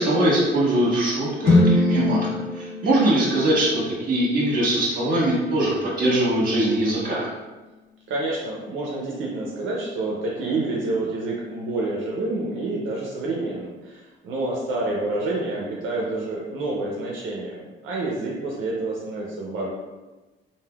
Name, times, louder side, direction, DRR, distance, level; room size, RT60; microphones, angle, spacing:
voice 1, 0.0-7.3, right 1 dB, 45° right, -5 dB, 1.3 m, -22 dB
sound 1, 1.4-5.5, left 2 dB, 85° left, 0.8 m, -24 dB
voice 2, 8.1-19.7, right 2 dB, 85° right, -3 dB, 0.6 m, -28 dB
3.2 x 2.5 x 2.3 m, 1.2 s
cardioid pair, 90°, 20 cm